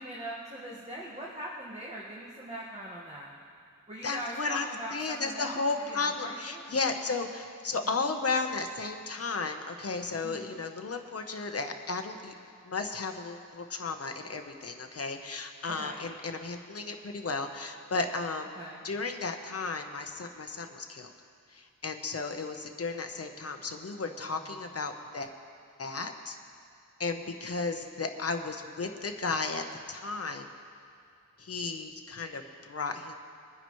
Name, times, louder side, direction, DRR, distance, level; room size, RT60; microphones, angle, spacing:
voice 1, 0.0-3.3 3.9-5.6 5.9-6.6 10.2-10.6 15.7-16.0 18.5-18.8 23.5-24.5, right 1 dB, 20° right, -6 dB, 1.6 m, -41 dB
voice 2, 4.0-12.3 12.6-18.6 18.8-21.1 21.5-25.3 25.8-26.4 27.0-30.5 31.4-33.1, left 4 dB, 45° left, 5 dB, 1.0 m, -34 dB
23.0 x 9.9 x 3.2 m, 2.3 s
wide cardioid pair, 105°, 32 cm